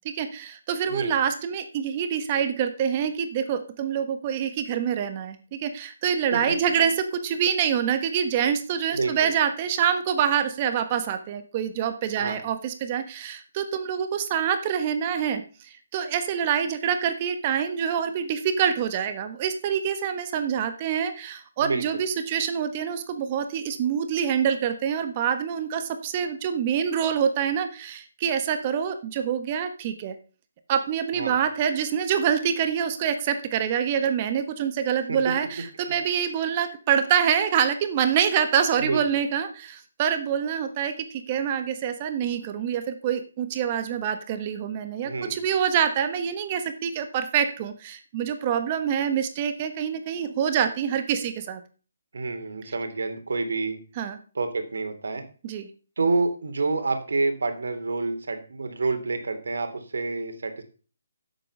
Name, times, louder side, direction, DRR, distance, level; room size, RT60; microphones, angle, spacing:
voice 1, 0.0-30.1 30.7-51.6 54.0-54.2 55.4-55.7, right 8 dB, 30° right, 9 dB, 1.3 m, -26 dB
voice 2, 8.9-9.3 12.2-12.4 21.6-22.0 31.1-31.4 35.1-35.2 38.8-39.0 45.0-45.4 52.1-53.8 54.3-55.2 56.0-60.6, right 3 dB, 75° right, 7 dB, 2.8 m, -28 dB
10.5 x 8.1 x 5.5 m, 0.38 s
hypercardioid pair, 155°, 0 cm